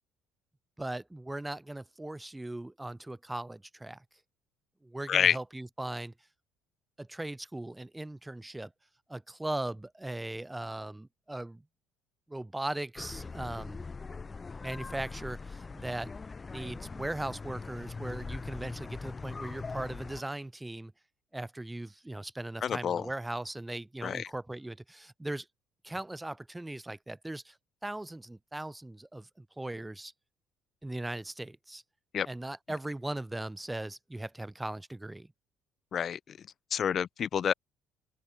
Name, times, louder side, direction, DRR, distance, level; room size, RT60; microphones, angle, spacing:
voice 1, 0.8-4.0 4.8-6.1 7.0-8.7 9.1-11.6 12.3-13.8 14.6-16.1 16.5-20.9 21.3-25.5 25.8-27.6 27.8-30.1 30.8-31.8 32.3-35.3, right 1 dB, 10° right, 1.7 m, -39 dB
sound 1, 13.0-20.2, left 4 dB, 30° left, 0.5 m, -41 dB
voice 2, 22.6-23.1 24.0-24.3 32.1-32.3 35.9-36.4 36.7-37.5, left 8 dB, 45° left, 0.8 m, -28 dB
hypercardioid pair, 55°, 0 cm